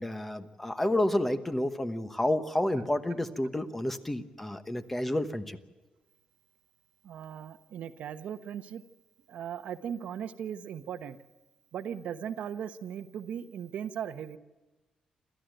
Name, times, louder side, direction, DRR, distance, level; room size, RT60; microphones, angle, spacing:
voice 1, 0.0-5.6, left 1 dB, 10° left, 10 dB, 1.1 m, -30 dB
voice 2, 7.0-8.8 9.3-11.2 11.7-14.4, right 8 dB, 75° right, 10 dB, 1.1 m, -38 dB
28.0 x 13.5 x 9.1 m, 1.1 s
wide cardioid pair, 175°, 2 cm